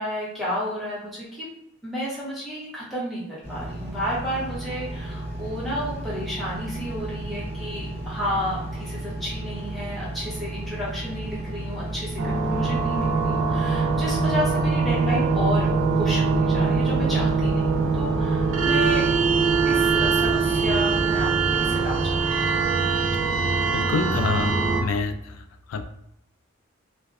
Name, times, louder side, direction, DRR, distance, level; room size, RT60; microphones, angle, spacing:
voice 1, 0.0-1.5 1.8-15.7 16.0-19.1 19.6-22.2, equal, ahead, -9 dB, 0.8 m, -31 dB
Engine, 3.4-22.3, right 1 dB, 50° right, 0.9 m, -34 dB
sound 1, 12.2-24.8, right 4 dB, 75° right, 0.5 m, -22 dB
voice 2, 23.7-24.6 24.8-25.4 25.7-25.8, left 4 dB, 85° left, 8 dB, 0.3 m, -27 dB
2.5 x 2.1 x 2.3 m, 0.78 s
head